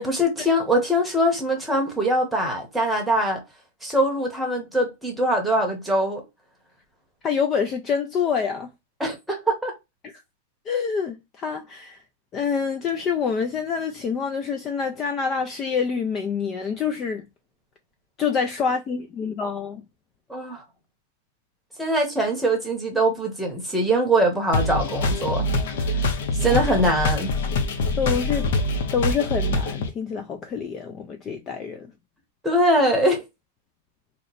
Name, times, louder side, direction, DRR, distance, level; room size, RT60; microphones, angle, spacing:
voice 1, 0.0-3.4 3.8-6.2 9.0-9.7 20.3-20.6 21.8-25.5 26.4-27.3 32.4-33.2, right 1 dB, ahead, 0.9 m, -22 dB
voice 2, 7.2-8.7 10.7-12.0 12.3-17.3 18.2-19.8 26.5-26.7 27.9-28.5 28.9-31.9, left 6 dB, 25° left, 0.3 m, -26 dB
sound 1, 24.5-29.9, left 2 dB, 65° left, 0.7 m, -24 dB
2.9 x 2.1 x 3.8 m
supercardioid pair, 155°, 0 cm